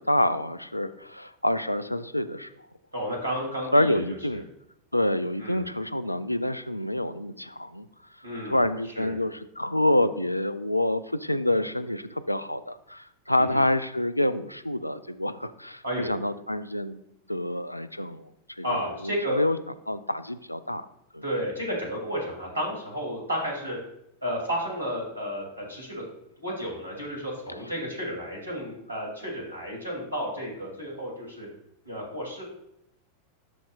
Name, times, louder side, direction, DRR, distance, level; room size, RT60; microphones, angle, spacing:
voice 1, 0.1-2.5 3.7-4.4 4.9-7.9 8.5-17.0 17.3-18.3 18.6-19.6 19.9-20.9 21.1-21.2, left 1 dB, 85° left, 13 dB, 0.4 m, -27 dB
voice 2, 2.9-4.4 5.4-5.6 8.2-9.2 13.5-13.6 15.8-16.1 18.6-19.4 21.2-23.8 24.2-26.0 26.4-31.5 31.8-32.4, equal, 80° right, -1 dB, 2.5 m, -32 dB
12.5 x 4.4 x 2.3 m, 0.78 s
figure-of-eight pair, 90°, 0 cm